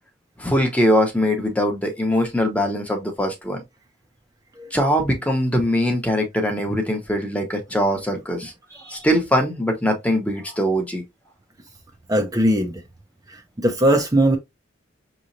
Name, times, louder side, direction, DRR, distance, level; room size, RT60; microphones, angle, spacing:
voice 1, 0.4-3.6 4.7-8.5 8.9-11.0, equal, 5° left, 0.9 m, -22 dB
voice 2, 12.1-12.7 13.6-14.4, right 1 dB, 20° right, 0.6 m, -19 dB
6.1 x 3.0 x 2.7 m
head